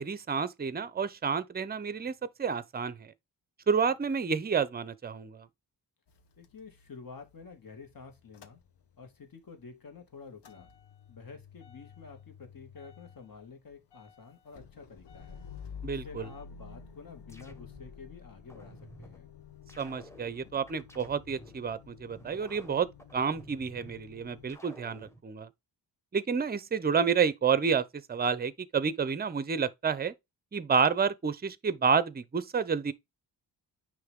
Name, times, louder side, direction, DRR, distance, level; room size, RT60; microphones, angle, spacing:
voice 1, 0.0-2.1 2.4-3.1 3.7-5.5 15.8-16.3 19.8-22.9 23.1-25.5 26.1-30.1 30.5-32.9, right 6 dB, 20° right, 0.6 m, -29 dB
Motor vehicle (road) / Engine starting / Idling, 6.1-9.2 9.6-24.5, left 7 dB, 70° left, 1.2 m, -51 dB
voice 2, 6.4-8.6 9.0-10.7 11.1-15.4 15.9-19.3, left 5 dB, 50° left, 2.2 m, -49 dB
sound 1, 16.7-18.0 18.5-19.2 19.7-21.6 22.1-24.0 24.5-25.2, equal, 5° left, 1.2 m, -53 dB
9.5 x 3.2 x 3.6 m
wide cardioid pair, 145°, 43 cm